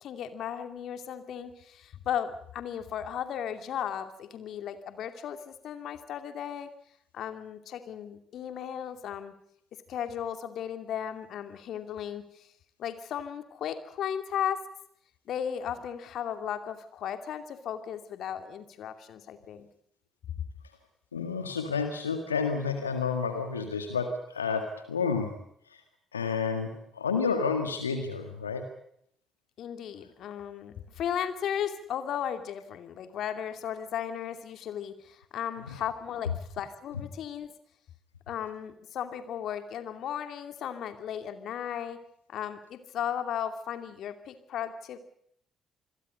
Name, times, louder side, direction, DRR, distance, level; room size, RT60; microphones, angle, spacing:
voice 1, 0.0-6.7 7.1-9.3 9.9-12.5 12.8-14.6 15.3-19.7 29.6-37.5 38.3-42.0 42.3-45.0, left 9 dB, 55° left, 9 dB, 2.6 m, -35 dB
voice 2, 21.1-25.4 25.7-25.8 26.1-28.7, left 5 dB, 85° left, 7 dB, 1.8 m, -30 dB
27.0 x 22.0 x 5.3 m, 0.69 s
figure-of-eight pair, 45°, 0 cm